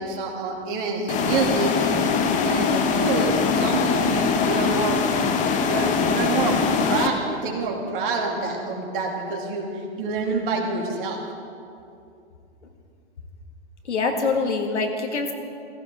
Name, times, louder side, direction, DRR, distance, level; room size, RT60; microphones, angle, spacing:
voice 1, 0.0-2.1 2.4-5.0 5.6-6.6 6.9-11.2, right 4 dB, 50° right, 0 dB, 2.4 m, -27 dB
sound 1, 1.1-7.1, left 5 dB, 20° left, 0.8 m, -22 dB
voice 2, 13.8-15.3, left 4 dB, 80° left, 4 dB, 1.9 m, -24 dB
15.5 x 14.5 x 3.6 m, 2.5 s
hypercardioid pair, 125°, 34 cm